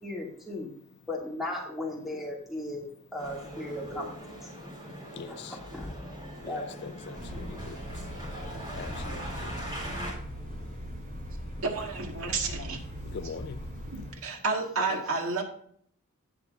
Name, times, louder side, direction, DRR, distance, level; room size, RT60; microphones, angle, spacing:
voice 1, 0.0-0.7 1.1-2.9 3.1-4.5 5.3-5.9 6.5-6.8, left 1 dB, ahead, 2.5 m, -37 dB
Male speech man speaking, 3.2-10.1, equal, 20° right, 3.8 m, -41 dB
voice 2, 5.1-5.6 6.4-7.8 8.7-9.0 13.0-13.6, left 6 dB, 50° left, 0.4 m, -41 dB
sound 1, 7.1-14.1, equal, 40° right, 4.2 m, -40 dB
voice 3, 11.6-12.8 13.9-15.4, right 3 dB, 80° right, 1.9 m, -31 dB
17.5 x 5.9 x 2.7 m
head